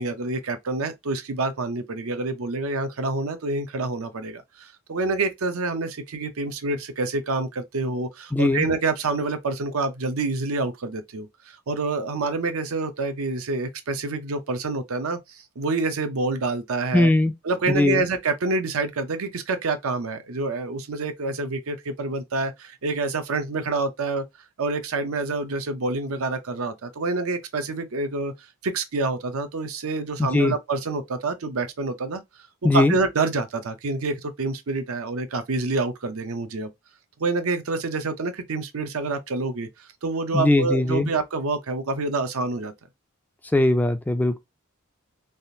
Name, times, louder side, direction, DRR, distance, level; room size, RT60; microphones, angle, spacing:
voice 1, 0.0-17.1 17.4-24.2 24.6-28.3 28.6-32.2 32.7-36.7 37.2-42.7, right 3 dB, 75° right, 0.6 m, -27 dB
voice 2, 8.3-8.6 16.9-17.3 17.7-18.0 30.2-30.5 32.6-33.0 40.3-41.1 43.5-44.4, left 2 dB, 10° left, 0.3 m, -20 dB
3.5 x 2.4 x 2.7 m
head